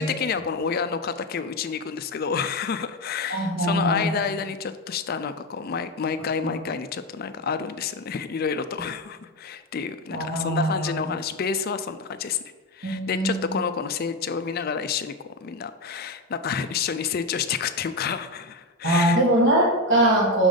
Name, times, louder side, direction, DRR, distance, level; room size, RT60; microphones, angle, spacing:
voice 1, 0.0-12.4 12.7-15.2 15.4-19.2, left 6 dB, 45° left, 11 dB, 0.3 m, -29 dB
voice 2, 3.3-4.2 6.4-6.5 10.1-11.0 12.8-13.6 18.8-20.5, right 1 dB, 55° right, -3 dB, 1.8 m, -22 dB
6.1 x 3.8 x 5.1 m, 1.3 s
head